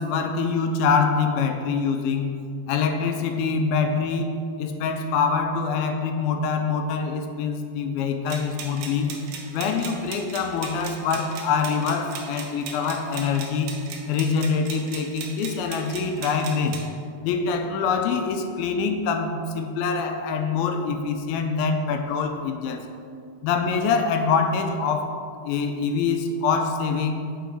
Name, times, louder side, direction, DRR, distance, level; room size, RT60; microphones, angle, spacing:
voice 1, 0.0-2.4 2.7-9.1 9.5-13.7 14.1-16.8 17.2-22.8 23.4-25.2 25.4-27.3, left 5 dB, 85° left, 6 dB, 2.4 m, -25 dB
sound 1, 8.3-16.9, right 5 dB, 80° right, 1.9 m, -38 dB
7.0 x 4.4 x 4.6 m, 2.3 s
omnidirectional pair, 4.3 m